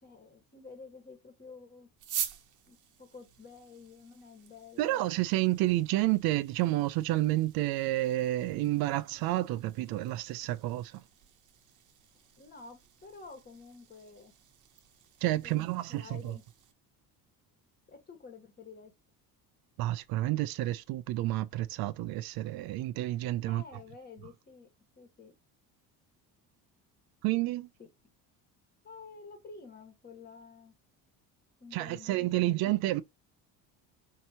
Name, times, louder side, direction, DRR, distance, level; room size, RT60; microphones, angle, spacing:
voice 1, 0.0-1.9 2.7-5.0 12.4-14.3 15.4-16.4 17.9-18.9 23.5-24.7 25.0-25.3 27.8-27.9 28.8-30.8 31.6-32.8, left 4 dB, 25° left, 1.3 m, -50 dB
sound 1, 2.0-16.7, right 9 dB, 55° right, 0.9 m, -46 dB
voice 2, 4.8-11.0 15.2-16.4 19.8-23.6 27.2-27.7 31.7-33.0, right 16 dB, 70° right, 0.5 m, -30 dB
4.6 x 2.7 x 2.8 m
cardioid pair, 135°, 38 cm